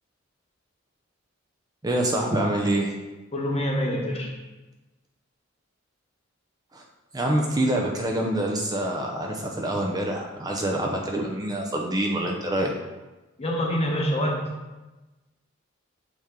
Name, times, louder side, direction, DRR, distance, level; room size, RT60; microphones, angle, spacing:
voice 1, 1.8-2.9 6.7-6.8 7.1-12.7, right 1 dB, 20° right, 0 dB, 0.5 m, -26 dB
voice 2, 3.3-4.3 13.4-14.5, equal, 30° left, 0 dB, 1.0 m, -26 dB
8.1 x 3.4 x 3.7 m, 1.1 s
head